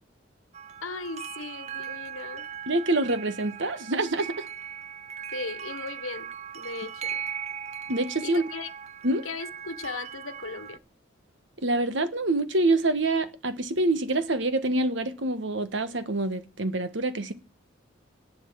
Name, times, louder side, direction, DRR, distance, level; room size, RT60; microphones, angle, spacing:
sound 1, 0.5-10.8, right 8 dB, 35° right, 0.5 m, -39 dB
voice 1, 0.8-2.5 5.3-6.3 6.5-7.2 8.2-8.7 9.2-10.8, left 4 dB, 90° left, 1.2 m, -37 dB
voice 2, 2.7-4.4 7.9-8.4 9.0-9.2 11.6-17.3, right 2 dB, 65° right, 1.4 m, -26 dB
11.0 x 9.4 x 6.2 m
head